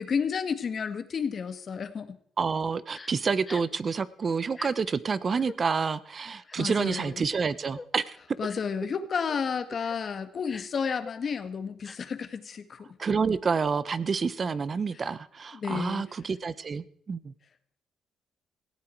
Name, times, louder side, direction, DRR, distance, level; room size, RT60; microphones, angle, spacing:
voice 1, 0.0-2.2 6.6-7.2 8.4-13.0 14.9-15.0 15.5-16.1, left 6 dB, 50° left, 10 dB, 1.7 m, -31 dB
voice 2, 2.4-8.4 13.0-17.3, right 5 dB, 40° right, 17 dB, 0.9 m, -28 dB
Crying sobbing, 2.9-3.1 3.4-3.8 4.5-4.7 5.3-5.6 6.5-7.2 7.7-7.9 8.5-8.7 9.1-9.4 9.8-10.0 10.4-11.1 11.8-12.0, left 3 dB, 25° left, 1.0 m, -44 dB
18.0 x 15.5 x 4.6 m, 0.62 s
cardioid pair, 90°, 0 cm